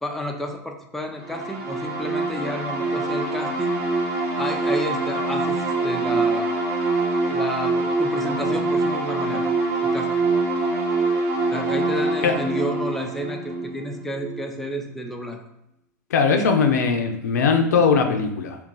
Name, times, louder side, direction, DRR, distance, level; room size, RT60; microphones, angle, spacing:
voice 1, 0.0-3.8 4.4-6.5 7.3-9.5 9.8-10.1 11.5-15.4, equal, 5° left, 2 dB, 0.4 m, -31 dB
sound 1, 1.2-14.7, right 3 dB, 60° right, 1.0 m, -24 dB
voice 2, 16.1-18.6, left 5 dB, 80° left, 5 dB, 0.4 m, -20 dB
2.4 x 2.3 x 3.8 m, 0.82 s
hypercardioid pair, 105°, 9 cm